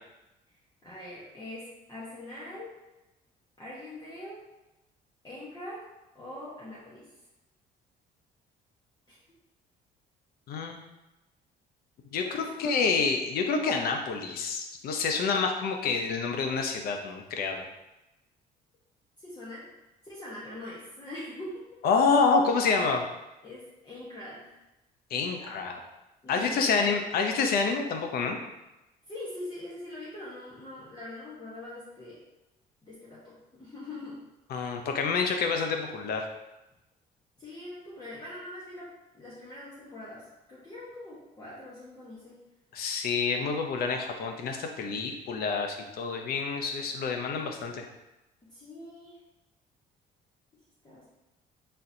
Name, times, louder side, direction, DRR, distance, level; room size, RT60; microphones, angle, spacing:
voice 1, 0.8-2.7 3.6-4.4 5.2-5.8 6.1-7.1 9.1-9.2 12.2-13.0 19.2-19.6 20.0-21.8 23.4-24.6 25.3-25.6 26.2-27.1 29.1-32.2 32.9-34.2 37.4-38.9 39.1-42.4 48.4-49.2 50.8-51.1, left 1 dB, 25° left, -8 dB, 1.1 m, -43 dB
voice 2, 12.1-17.7 21.8-23.0 25.1-25.8 26.3-28.4 34.5-36.3 42.7-47.9, left 4 dB, 65° left, 4 dB, 0.7 m, -28 dB
4.3 x 3.8 x 2.7 m, 0.98 s
cardioid pair, 110°, 17 cm